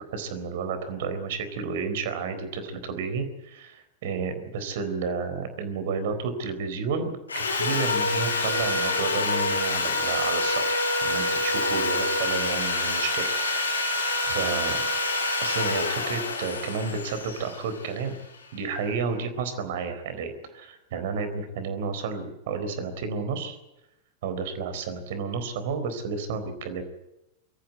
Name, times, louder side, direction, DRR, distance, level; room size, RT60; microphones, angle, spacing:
voice 1, 0.1-13.9 14.2-14.8 15.4-18.2 18.5-23.6 24.2-26.8, right 5 dB, 55° right, 9 dB, 4.1 m, -31 dB
Sawing, 7.3-18.3, left 2 dB, 75° left, 3.6 m, -27 dB
24.0 x 14.5 x 9.4 m, 0.92 s
figure-of-eight pair, 90°, 0 cm